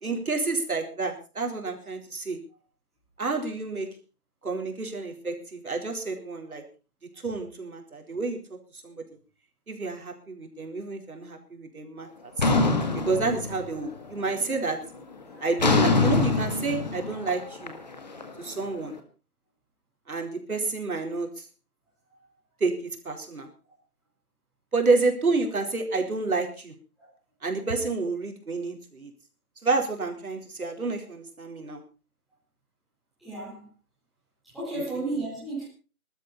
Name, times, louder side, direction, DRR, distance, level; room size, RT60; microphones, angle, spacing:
voice 1, 0.0-2.4 3.2-3.9 4.4-6.6 7.2-8.4 8.8-9.0 9.7-12.1 13.1-14.8 15.4-17.7 18.4-19.0 20.1-21.5 22.6-22.7 23.0-23.5 24.7-26.7 27.4-29.1 29.6-31.8, right 3 dB, 70° right, 4.4 m, -29 dB
sound 1, 12.4-13.9 14.3-14.7 15.6-18.7, left 3 dB, 30° left, 1.8 m, -24 dB
voice 2, 33.2-33.7 34.4-35.7, right 2 dB, ahead, 4.2 m, -34 dB
20.5 x 13.0 x 4.2 m
figure-of-eight pair, 175°, 45 cm